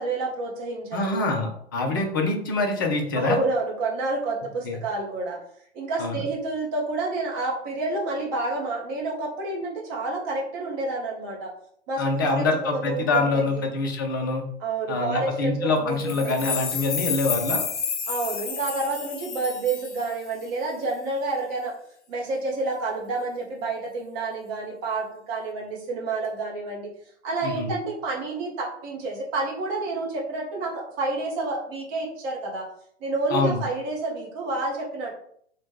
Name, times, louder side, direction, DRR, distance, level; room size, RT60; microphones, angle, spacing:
voice 1, 0.0-1.3 1.7-2.1 3.2-5.4 5.7-11.5 11.9-12.5 12.7-13.7 14.6-16.6 18.1-21.7 22.1-26.9 27.2-32.7 33.0-35.1, right 3 dB, 20° right, -2 dB, 0.6 m, -29 dB
voice 2, 0.9-3.4 4.6-4.7 6.0-6.2 12.0-14.4 14.9-17.6 27.4-27.7 33.3-33.6, left 3 dB, 20° left, 3 dB, 0.3 m, -25 dB
sound 1, 16.0-20.4, left 6 dB, 85° left, 0.5 m, -31 dB
4.1 x 2.1 x 3.1 m, 0.65 s
figure-of-eight pair, 115°, 34 cm